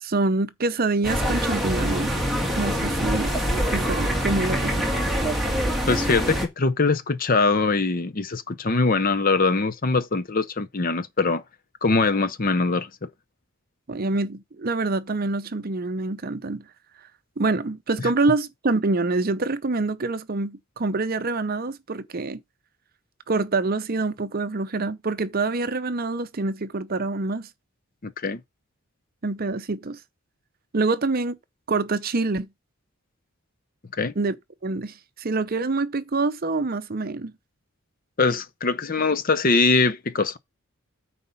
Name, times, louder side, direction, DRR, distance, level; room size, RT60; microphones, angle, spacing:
voice 1, 0.0-2.1 2.6-3.3 3.7-4.9 13.9-16.6 17.4-22.4 23.3-27.5 29.2-30.0 30.7-31.4 31.7-32.5 34.2-34.3 34.6-37.3, right 3 dB, 45° right, 0.7 m, -26 dB
sound 1, 1.0-6.5, equal, ahead, 1.9 m, -24 dB
voice 2, 5.9-11.4 11.8-12.9 18.0-18.1 28.0-28.4 34.0-34.1 38.2-40.4, left 3 dB, 40° left, 0.7 m, -22 dB
9.4 x 4.1 x 5.6 m
head